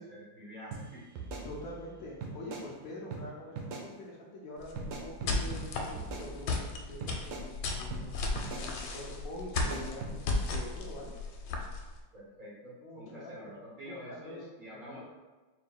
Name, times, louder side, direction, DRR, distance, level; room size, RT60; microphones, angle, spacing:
voice 1, 0.0-1.3 12.1-15.0, equal, 40° right, -7 dB, 0.8 m, -48 dB
sound 1, 0.7-0.8 1.2-1.9 2.2-2.7 3.1-3.2 3.6-3.9 4.8-5.6 6.0-6.7 7.0-7.5 7.9-8.0 8.4-8.7 9.6-10.1, right 5 dB, 85° right, 1.4 m, -40 dB
voice 2, 1.4-11.1 12.8-13.5 13.8-14.4 14.9-15.0, left 1 dB, 65° left, -3 dB, 0.8 m, -45 dB
sound 2, 4.6-12.0, left 3 dB, 85° left, 1.3 m, -35 dB
4.8 x 3.6 x 2.2 m, 1.2 s
omnidirectional pair, 2.0 m